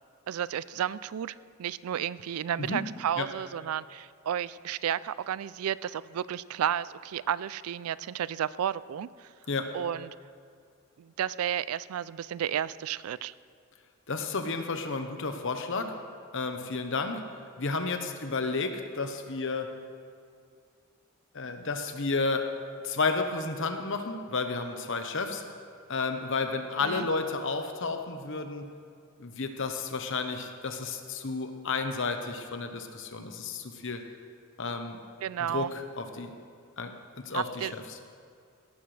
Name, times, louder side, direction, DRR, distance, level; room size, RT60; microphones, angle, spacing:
voice 1, 0.3-9.3 9.7-10.1 11.0-13.3 26.8-27.1 35.2-35.7 37.3-37.7, right 9 dB, 90° right, 18 dB, 0.3 m, -32 dB
voice 2, 14.1-15.9 16.3-17.2 17.6-19.7 21.3-22.5 22.8-25.4 25.9-28.7 29.2-34.0 34.6-35.0 35.5-36.3 36.8-38.0, left 4 dB, 60° left, 6 dB, 1.1 m, -32 dB
17.0 x 12.5 x 3.3 m, 2.3 s
head